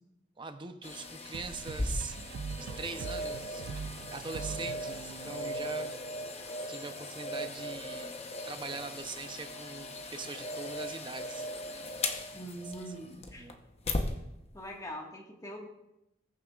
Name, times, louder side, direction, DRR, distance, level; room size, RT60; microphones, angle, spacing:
voice 1, 0.4-2.2 2.5-5.9 6.7-11.5 12.3-12.5 13.0-13.6, right 4 dB, 25° right, 8 dB, 0.7 m, -42 dB
sound 1, 0.8-14.1 14.6-14.7, left 1 dB, 35° left, 0.9 m, -38 dB
sound 2, 1.3-6.6, right 6 dB, 85° right, 0.3 m, -43 dB
voice 2, 12.3-13.5 14.5-15.7, equal, 20° left, 0 dB, 1.6 m, -43 dB
20.5 x 6.9 x 2.4 m, 0.91 s
head